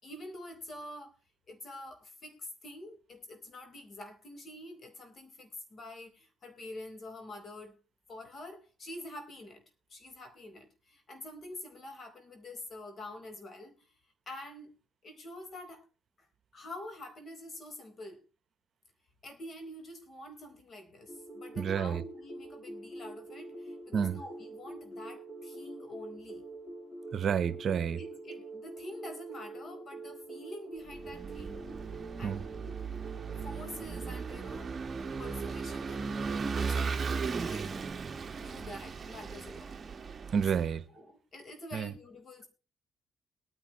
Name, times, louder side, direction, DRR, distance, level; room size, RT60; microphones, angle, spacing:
voice 1, 0.0-1.1 1.5-7.8 8.1-9.6 9.9-13.9 14.3-14.7 15.0-15.8 16.2-16.3 16.5-18.2 19.2-26.4 28.0-31.7 32.2-32.5 33.4-37.7 38.4-39.8 40.9-42.5, left 1 dB, 45° left, 4.2 m, -47 dB
sound 1, 21.1-34.7, right 2 dB, 25° left, 4.1 m, -45 dB
voice 2, 21.6-22.0 23.9-24.2 27.1-28.0 32.2-32.4 40.3-40.9 41.7-41.9, right 7 dB, 55° right, 0.9 m, -30 dB
Vehicle / Engine, 30.9-40.7, right 5 dB, 40° right, 1.1 m, -37 dB
21.5 x 9.8 x 3.1 m
cardioid pair, 90°, 0 cm